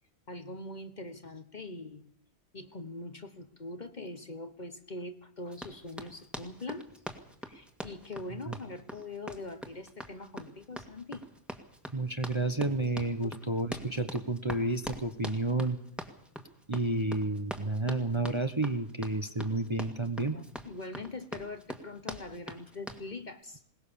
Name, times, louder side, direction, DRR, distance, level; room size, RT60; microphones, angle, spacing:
voice 1, 0.3-2.1 2.5-6.9 7.5-11.2 20.3-23.6, left 2 dB, 35° left, 9 dB, 1.2 m, -42 dB
Run, 5.5-23.1, equal, ahead, 1.9 m, -43 dB
voice 2, 11.9-15.8 16.7-20.4, right 2 dB, 25° right, 9 dB, 1.0 m, -31 dB
21.5 x 19.5 x 7.0 m, 0.68 s
omnidirectional pair, 1.4 m